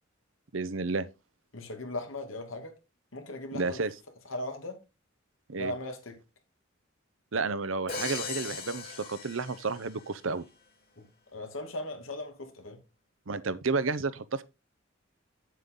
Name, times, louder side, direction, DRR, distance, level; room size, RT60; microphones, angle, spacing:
voice 1, 0.5-1.1 3.5-3.9 5.5-5.7 7.3-10.4 13.3-14.4, right 4 dB, 75° right, 0.8 m, -31 dB
voice 2, 1.5-2.8 3.1-3.8 4.3-4.8 5.5-6.2 11.0-12.8, left 1 dB, 90° left, 2.3 m, -38 dB
Crash cymbal, 7.9-10.1, left 6 dB, 50° left, 2.7 m, -38 dB
8.5 x 7.6 x 3.7 m
head